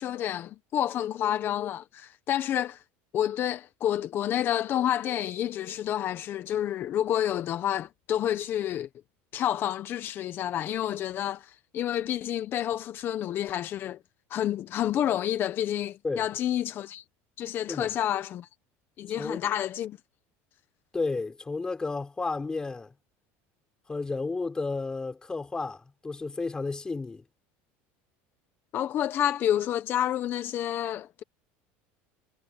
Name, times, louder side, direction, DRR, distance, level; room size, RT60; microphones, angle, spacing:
voice 1, 0.0-2.8 3.1-8.9 9.3-14.0 14.3-17.0 17.4-18.5 19.0-20.0 28.7-31.2, left 11 dB, 40° left, 0.9 m, -29 dB
voice 2, 20.9-22.9 23.9-27.2, left 3 dB, 15° left, 4.2 m, -32 dB
cardioid pair, 145°, 6 cm